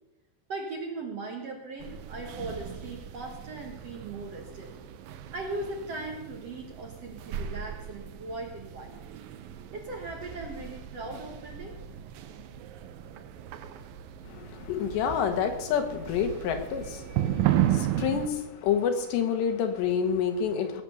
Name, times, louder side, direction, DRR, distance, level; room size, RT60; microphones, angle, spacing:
voice 1, 0.5-4.7 5.3-9.1 9.7-11.7, right 2 dB, 55° right, 1 dB, 2.0 m, -38 dB
sound 1, 1.8-18.3, right 11 dB, 75° right, 2.2 m, -35 dB
voice 2, 14.3-20.8, left 7 dB, 85° left, 6 dB, 3.6 m, -28 dB
18.5 x 7.9 x 6.9 m, 0.95 s
omnidirectional pair, 4.9 m